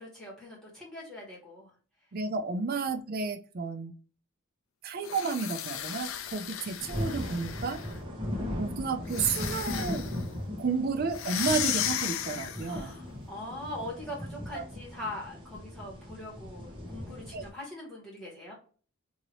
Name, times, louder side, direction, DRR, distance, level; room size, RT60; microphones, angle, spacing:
voice 1, 0.0-1.7 2.7-2.8 12.6-18.5, left 1 dB, ahead, -5 dB, 1.5 m, -42 dB
voice 2, 2.1-3.9 4.8-7.8 8.6-10.1 10.6-12.9 14.5-14.6 17.3-17.4, right 4 dB, 45° right, 7 dB, 0.4 m, -32 dB
sound 1, 5.0-8.0 9.1-10.2 11.1-12.8, left 10 dB, 65° left, 0.4 m, -35 dB
sound 2, 6.2-6.3 6.4-17.5, left 1 dB, 25° right, 0.8 m, -38 dB
2.8 x 2.7 x 3.0 m, 0.39 s
head